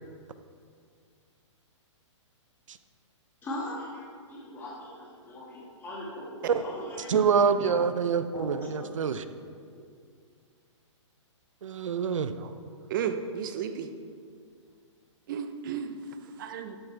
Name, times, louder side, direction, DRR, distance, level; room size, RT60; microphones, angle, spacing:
voice 1, 3.4-7.2 7.6-7.7 8.3-9.0, left 1 dB, 15° left, -6 dB, 2.1 m, -40 dB
voice 2, 7.1-9.2 11.6-12.3, right 6 dB, 80° right, 11 dB, 0.8 m, -26 dB
voice 3, 12.9-13.9 15.3-16.0 16.2-16.8, right 8 dB, 40° right, 8 dB, 0.8 m, -33 dB
13.0 x 11.5 x 3.5 m, 2.2 s
hypercardioid pair, 155°, 16 cm